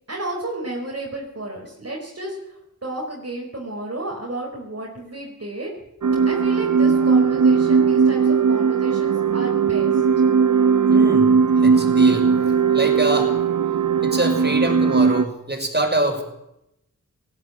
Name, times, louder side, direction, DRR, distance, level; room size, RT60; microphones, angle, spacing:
voice 1, 0.1-5.7 6.2-10.0, right 1 dB, 50° right, -2 dB, 4.8 m, -32 dB
sound 1, 6.0-15.2, right 6 dB, 70° right, 0.9 m, -18 dB
voice 2, 10.9-11.3 11.6-12.3 12.7-13.4 14.0-16.2, right 1 dB, 30° right, 3 dB, 6.1 m, -24 dB
19.0 x 15.5 x 9.1 m, 0.83 s
wide cardioid pair, 50°, 32 cm